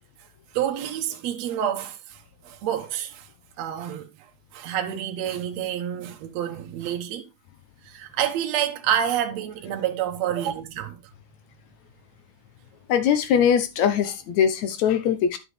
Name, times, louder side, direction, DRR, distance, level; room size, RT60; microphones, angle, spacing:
voice 1, 0.5-3.3 3.6-4.1 4.5-7.3 7.8-11.0, right 10 dB, 65° right, 1.9 m, -28 dB
voice 2, 12.9-15.4, left 8 dB, 70° left, 2.0 m, -21 dB
9.7 x 6.3 x 3.2 m
omnidirectional pair, 3.6 m